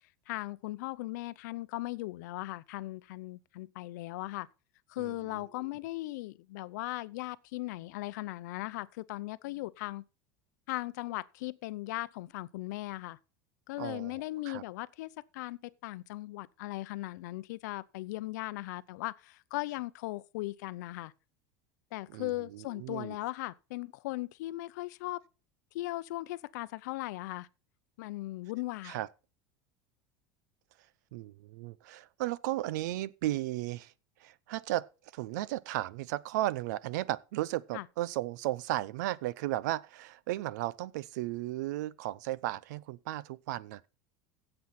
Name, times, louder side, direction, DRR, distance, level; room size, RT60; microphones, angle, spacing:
voice 1, 0.3-4.5 4.9-10.0 10.7-13.2 13.7-21.1 21.9-25.2 25.7-27.5 28.0-29.0 37.7-37.9, left 19 dB, 75° left, 0.6 m, -38 dB
voice 2, 13.8-14.1 14.5-14.6 22.1-23.1 28.8-29.1 31.1-33.9 34.2-34.9 35.1-43.9, right 15 dB, 75° right, 0.6 m, -35 dB
15.5 x 7.9 x 4.2 m
supercardioid pair, 155°, 9 cm